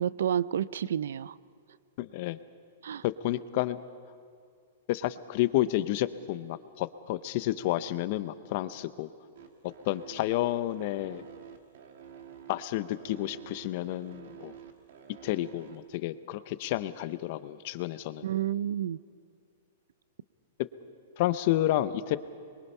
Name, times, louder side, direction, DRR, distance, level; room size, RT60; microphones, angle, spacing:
voice 1, 0.0-1.4 2.8-3.0 18.2-19.0, right 10 dB, 80° right, 20 dB, 0.5 m, -30 dB
voice 2, 2.0-2.4 3.0-3.8 4.9-9.1 9.6-11.2 12.5-14.5 15.2-18.3 21.2-22.2, left 14 dB, 40° left, 15 dB, 0.7 m, -30 dB
sound 1, 9.3-15.9, right 8 dB, 60° right, 2.0 m, -49 dB
26.0 x 22.5 x 5.6 m, 2.3 s
supercardioid pair, 165°, 0 cm